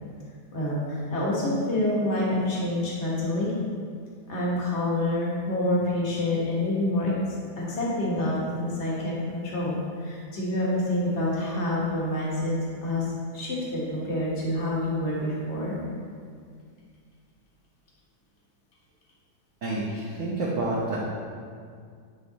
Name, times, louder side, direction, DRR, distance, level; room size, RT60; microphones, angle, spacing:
voice 1, 0.5-3.5 4.3-7.2 7.6-12.5 12.8-13.0 13.3-15.8, left 1 dB, 45° left, -6 dB, 1.7 m, -27 dB
voice 2, 19.6-21.0, right 2 dB, 55° right, -6 dB, 1.2 m, -28 dB
9.9 x 3.4 x 4.0 m, 2.1 s
omnidirectional pair, 1.8 m